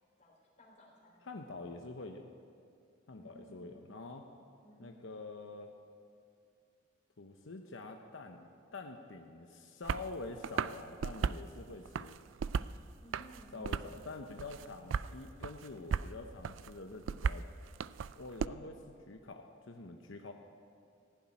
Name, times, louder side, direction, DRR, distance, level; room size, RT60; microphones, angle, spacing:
voice 1, 0.2-1.3 3.2-3.9 4.6-5.0 13.0-14.1, equal, 35° left, -2 dB, 3.6 m, -58 dB
voice 2, 1.2-2.3 3.1-4.3 4.8-5.7 7.2-12.2 13.5-17.4 18.1-20.3, left 3 dB, 85° left, 4 dB, 0.9 m, -46 dB
sound 1, 9.8-10.1 10.4-11.4 11.9-12.8 13.1-14.0 14.4-15.1 15.4-16.1 16.4-18.5, right 6 dB, 80° right, 0.4 m, -36 dB
16.5 x 7.3 x 9.8 m, 2.4 s
head